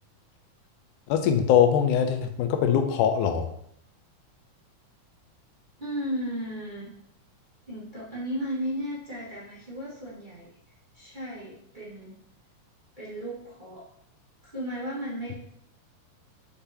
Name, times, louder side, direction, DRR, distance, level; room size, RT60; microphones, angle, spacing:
voice 1, 1.1-3.5, left 8 dB, 85° left, 7 dB, 2.1 m, -22 dB
voice 2, 5.8-6.9 7.7-12.2 13.0-13.8 14.4-15.3, equal, 20° right, -9 dB, 1.3 m, -35 dB
6.7 x 5.0 x 2.8 m, 0.74 s
omnidirectional pair, 3.5 m